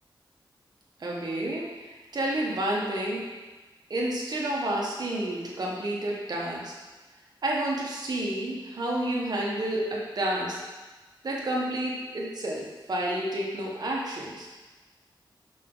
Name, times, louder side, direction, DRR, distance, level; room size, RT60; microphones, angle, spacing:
voice 1, 1.0-3.2 3.9-6.7 7.4-10.6 11.2-14.5, right 1 dB, 50° right, -3 dB, 1.4 m, -30 dB
6.0 x 5.9 x 3.9 m, 1.2 s
wide cardioid pair, 125°, 9 cm